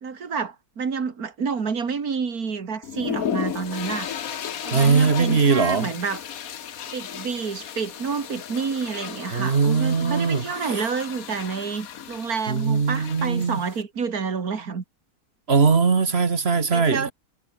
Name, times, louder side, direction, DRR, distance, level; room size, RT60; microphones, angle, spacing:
voice 1, 0.0-4.1 4.6-6.2 6.9-14.8 16.5-17.1, right 5 dB, 65° right, 2.7 m, -29 dB
sound 1, 2.8-13.8, left 8 dB, 65° left, 1.5 m, -34 dB
voice 2, 4.7-5.9 9.3-10.4 12.5-13.6 15.5-17.1, right 5 dB, 40° right, 1.6 m, -20 dB
omnidirectional pair, 1.7 m